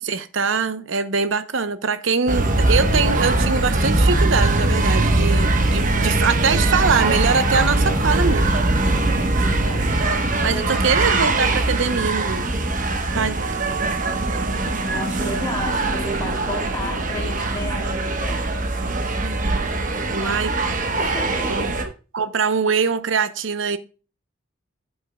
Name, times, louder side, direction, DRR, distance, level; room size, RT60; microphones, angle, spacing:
voice 1, 0.0-8.5 10.4-12.5 13.1-13.7 20.1-20.5 21.5-21.7 22.1-23.8, right 5 dB, 70° right, 0.8 m, -23 dB
sound 1, 2.3-21.8, right 2 dB, 40° right, 1.1 m, -21 dB
voice 2, 9.4-10.0 10.5-11.1 13.7-14.0 14.7-18.4 19.9-20.6 20.9-21.7, left 1 dB, 20° left, 2.8 m, -33 dB
8.9 x 7.8 x 2.3 m
head